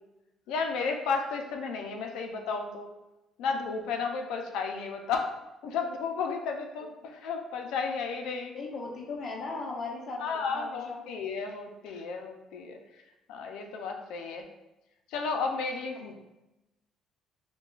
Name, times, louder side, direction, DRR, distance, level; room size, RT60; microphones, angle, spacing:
voice 1, 0.5-2.9 3.4-5.3 5.6-8.6 10.2-12.8 13.3-14.5 15.1-16.1, left 5 dB, 85° left, 4 dB, 0.5 m, -33 dB
voice 2, 8.5-11.0 16.0-16.1, left 3 dB, 50° left, -1 dB, 0.8 m, -38 dB
5.8 x 2.2 x 2.4 m, 0.98 s
cardioid pair, 125°, 0 cm